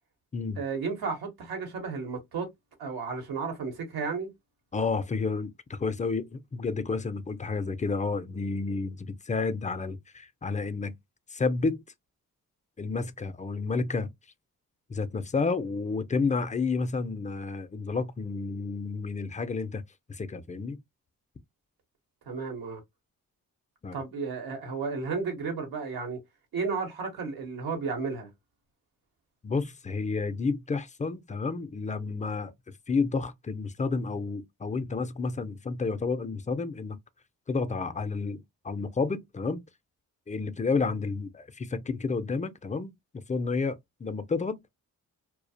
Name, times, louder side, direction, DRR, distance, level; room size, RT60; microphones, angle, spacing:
voice 1, 0.6-2.5 2.8-4.3 22.3-22.8 23.9-26.2 26.5-28.3, right 4 dB, 90° right, 1.0 m, -33 dB
voice 2, 4.7-11.0 11.3-11.8 12.8-14.1 14.9-19.8 20.1-20.8 23.8-24.0 29.4-32.5 32.9-37.0 37.5-39.6 40.3-44.6, left 4 dB, 20° left, 0.4 m, -30 dB
2.3 x 2.1 x 2.7 m
cardioid pair, 55°, 36 cm